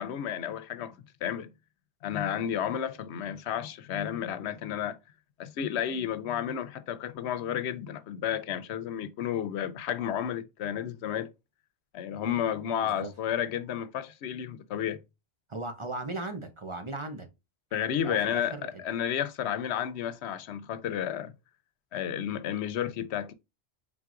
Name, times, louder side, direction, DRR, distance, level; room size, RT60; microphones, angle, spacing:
voice 1, 0.0-1.5 2.0-5.0 5.4-11.3 11.9-15.0 17.7-21.3 21.9-23.3, left 9 dB, 90° left, 0.9 m, -32 dB
voice 2, 15.5-17.3 18.0-18.7, right 2 dB, 30° right, 0.7 m, -37 dB
4.6 x 3.8 x 2.4 m
omnidirectional pair, 1.1 m